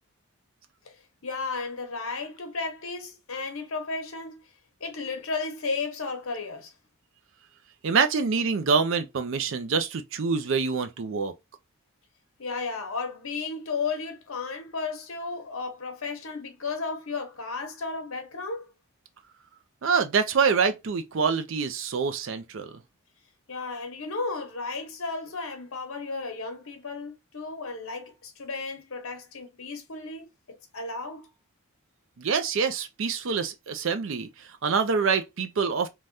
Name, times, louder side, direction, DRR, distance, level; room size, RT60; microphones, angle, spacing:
voice 1, 1.2-4.4 4.8-6.7 7.9-8.0 12.4-18.7 23.5-30.3 30.7-31.3, left 4 dB, 70° left, 0.9 m, -34 dB
voice 2, 7.8-11.3 19.8-22.8 32.2-35.9, right 5 dB, 60° right, 0.4 m, -26 dB
3.3 x 2.2 x 2.5 m
head